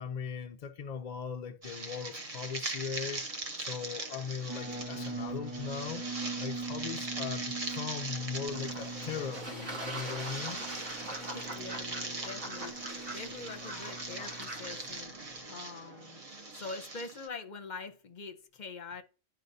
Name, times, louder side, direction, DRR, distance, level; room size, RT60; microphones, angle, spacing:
voice 1, 0.0-3.2 3.6-6.1 6.4-10.7, left 7 dB, 65° left, 0.4 m, -39 dB
sound 1, 1.6-17.3, right 2 dB, 35° right, 0.8 m, -41 dB
sound 2, 4.5-15.4, right 3 dB, 10° right, 1.2 m, -43 dB
Fowl / Bird / Water, 8.5-15.0, right 1 dB, 75° right, 2.0 m, -43 dB
voice 2, 11.2-15.1 15.5-19.0, left 4 dB, 40° left, 0.8 m, -44 dB
11.0 x 4.5 x 2.7 m
omnidirectional pair, 1.3 m